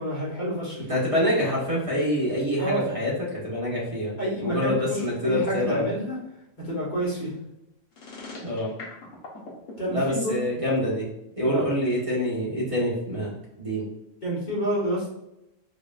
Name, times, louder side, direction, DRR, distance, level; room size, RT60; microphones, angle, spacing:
voice 1, 0.0-0.8 2.6-2.9 4.2-6.2 6.6-7.3 9.8-10.4 11.5-11.6 14.2-15.1, right 1 dB, 35° left, -6 dB, 1.4 m, -28 dB
voice 2, 0.9-3.1 3.4-5.9 8.4-8.7 9.9-11.1 11.4-13.3 13.6-13.8, left 1 dB, 25° right, -5 dB, 1.3 m, -26 dB
sound 1, 7.9-10.1, left 3 dB, 75° left, 1.3 m, -40 dB
4.8 x 3.0 x 2.4 m, 0.87 s
omnidirectional pair, 1.4 m